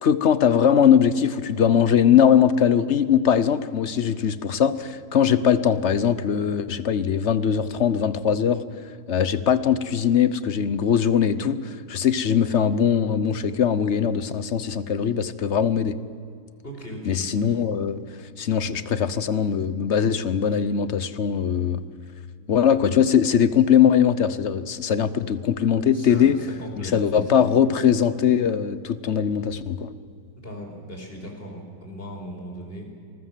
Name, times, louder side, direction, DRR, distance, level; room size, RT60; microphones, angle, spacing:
voice 1, 0.0-8.6 9.1-16.0 17.1-18.0 18.4-21.8 22.5-26.4 26.8-29.9, left 8 dB, 50° left, 14 dB, 1.0 m, -21 dB
voice 2, 16.6-17.5 25.9-26.3 26.6-27.6 30.4-32.9, equal, 30° left, 1 dB, 5.1 m, -38 dB
27.0 x 20.0 x 7.6 m, 2.3 s
omnidirectional pair, 1.8 m